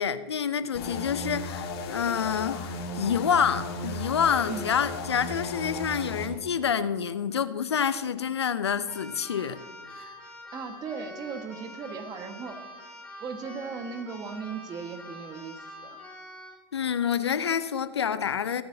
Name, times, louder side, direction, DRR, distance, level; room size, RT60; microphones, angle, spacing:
voice 1, 0.0-2.6 3.0-9.6 10.0-10.1 16.7-18.6, left 7 dB, 90° left, 0.6 m, -27 dB
sound 1, 0.7-6.3, left 3 dB, 70° left, 2.5 m, -35 dB
voice 2, 4.4-4.7 10.5-12.6 13.2-16.0, right 5 dB, 30° right, 1.5 m, -37 dB
Keyboard (musical), 8.9-16.6, equal, 5° left, 3.3 m, -45 dB
20.0 x 9.4 x 2.8 m
hypercardioid pair, 105°, 13 cm